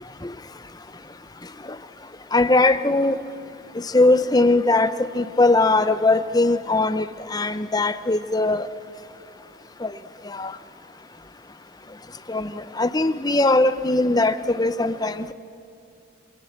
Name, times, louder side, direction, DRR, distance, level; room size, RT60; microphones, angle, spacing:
voice 1, 2.3-3.2 3.7-8.7 9.8-10.0 10.2-10.6 12.3-15.3, left 2 dB, 20° left, 11 dB, 0.7 m, -20 dB
27.0 x 24.5 x 7.3 m, 2.6 s
head